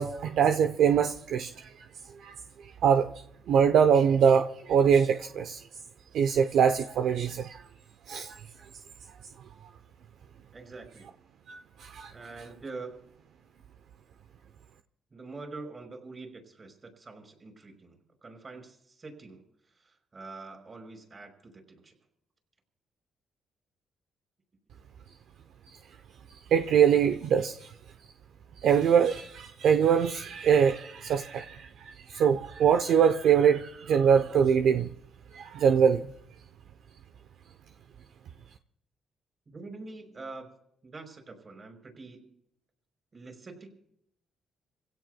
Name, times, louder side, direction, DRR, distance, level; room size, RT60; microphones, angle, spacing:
voice 1, 0.0-1.7 2.2-2.4 2.8-3.1 3.5-5.6 6.1-7.6 8.1-8.4 11.5-12.1 26.5-27.5 28.6-34.9 35.3-36.1, right 7 dB, 75° right, 7 dB, 0.7 m, -23 dB
voice 2, 10.5-11.1 12.1-13.0 15.1-19.4 19.8-21.9 39.5-40.5 40.8-42.3 43.1-43.8, right 3 dB, 35° right, 3 dB, 5.3 m, -45 dB
28.5 x 16.5 x 2.3 m, 0.74 s
cardioid pair, 90°, 0 cm